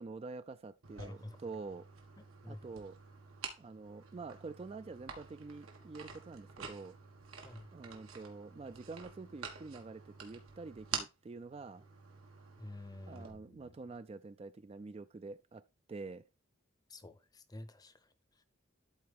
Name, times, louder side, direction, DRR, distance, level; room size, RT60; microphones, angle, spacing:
voice 1, 0.0-1.8 2.5-2.9 3.6-7.0 7.7-11.9 13.1-15.6 15.9-16.2, right 3 dB, 30° right, 0.3 m, -47 dB
sound 1, 0.8-13.3, right 6 dB, 90° right, 1.7 m, -48 dB
voice 2, 1.0-1.4 2.4-2.6 7.4-7.7 12.6-13.8 16.9-18.4, left 1 dB, 20° left, 0.7 m, -49 dB
12.5 x 4.2 x 3.5 m
head